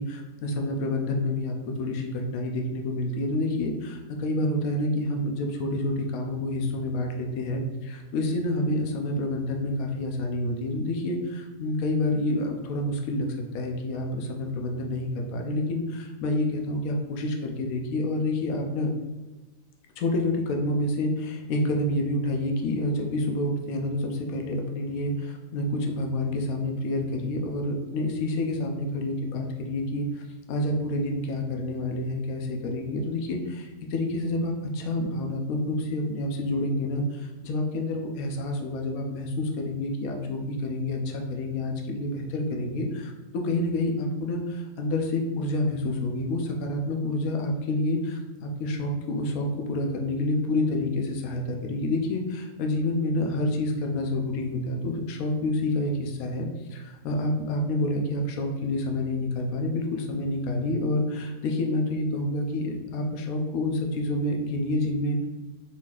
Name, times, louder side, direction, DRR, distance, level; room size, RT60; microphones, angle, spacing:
voice 1, 0.0-13.3 13.5-18.9 20.0-30.2 30.5-65.2, left 1 dB, 65° left, 2 dB, 1.0 m, -28 dB
4.1 x 4.1 x 2.4 m, 1.2 s
omnidirectional pair, 1.8 m